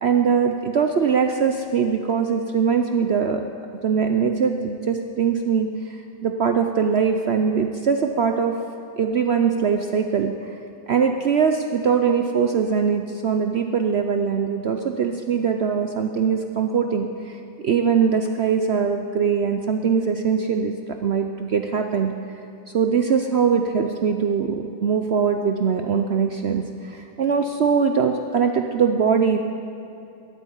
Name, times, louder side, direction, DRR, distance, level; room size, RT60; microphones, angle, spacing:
voice 1, 0.0-3.4 3.8-8.6 9.0-10.5 10.9-20.8 21.0-22.1 22.7-29.4, right 6 dB, 75° right, 5 dB, 0.5 m, -22 dB
13.5 x 9.1 x 9.9 m, 2.7 s
omnidirectional pair, 1.9 m